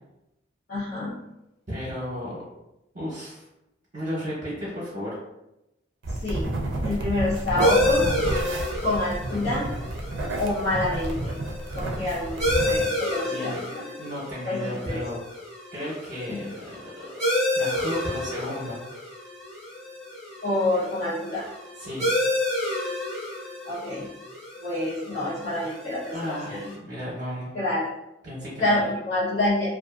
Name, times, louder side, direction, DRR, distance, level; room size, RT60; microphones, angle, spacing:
voice 1, 0.7-1.1 6.2-6.5 6.8-8.1 8.8-9.7 10.4-11.3 11.7-13.9 14.4-15.0 16.3-16.4 20.4-21.5 23.6-24.1 24.6-26.6 27.5-27.9 28.6-29.7, left 2 dB, 65° left, -13 dB, 0.9 m, -27 dB
voice 2, 1.7-2.4 2.9-3.4 3.9-5.2 13.2-13.6 14.0-15.2 15.7-18.8 21.8-22.1 26.1-27.5 28.2-28.8, equal, 45° right, -8 dB, 0.7 m, -34 dB
sound 1, 6.0-12.8, right 1 dB, 75° right, 0.4 m, -30 dB
sound 2, 7.6-26.7, left 1 dB, 5° left, 0.7 m, -30 dB
2.4 x 2.4 x 2.4 m, 0.92 s
head